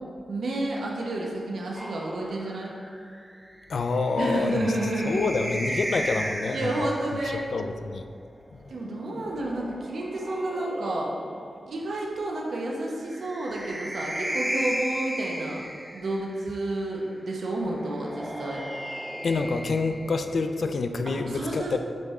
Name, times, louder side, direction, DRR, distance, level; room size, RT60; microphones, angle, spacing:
voice 1, 0.3-2.7 4.2-5.2 6.5-7.5 8.7-11.1 11.7-15.6 15.9-18.6 21.1-21.8, right 1 dB, 80° right, -2 dB, 0.9 m, -30 dB
sound 1, 1.8-7.3 8.7-11.7 13.0-16.5 17.7-20.7, equal, 10° right, 0.4 m, -36 dB
voice 2, 3.7-4.7 5.0-6.9 7.5-8.0 8.5-8.6 19.2-21.8, left 3 dB, 65° left, 7 dB, 0.4 m, -27 dB
8.1 x 3.6 x 3.2 m, 2.2 s
wide cardioid pair, 135°, 0 cm